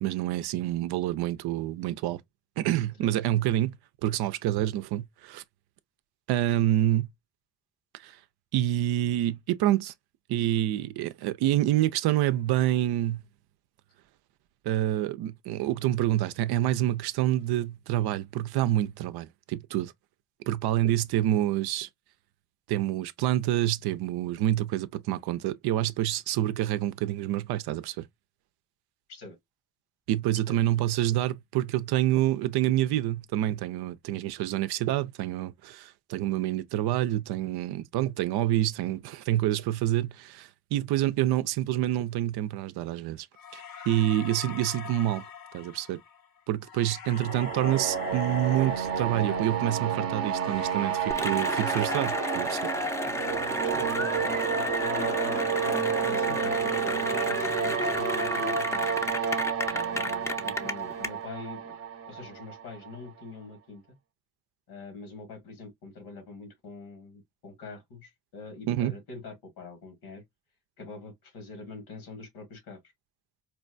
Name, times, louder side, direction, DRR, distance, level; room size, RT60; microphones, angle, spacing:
voice 1, 0.0-2.2 2.6-5.4 6.3-7.1 8.0-8.2 8.5-9.9 10.3-13.2 14.6-19.9 20.5-21.9 22.7-28.1 30.1-43.3 43.5-45.2 45.5-46.0 46.5-52.7 68.7-68.9, right 13 dB, 80° right, 0.5 m, -27 dB
sound 1, 43.4-53.6 53.9-57.3, left 6 dB, 65° left, 1.0 m, -43 dB
sound 2, 47.1-63.0, right 7 dB, 40° right, 0.6 m, -30 dB
Cheering / Applause, 51.1-61.1, left 1 dB, 10° left, 0.5 m, -32 dB
voice 2, 53.6-59.0 59.7-61.8 62.1-64.0 64.7-70.2 70.8-72.8, left 3 dB, 90° left, 1.7 m, -44 dB
4.4 x 2.2 x 2.4 m
cardioid pair, 75°, 38 cm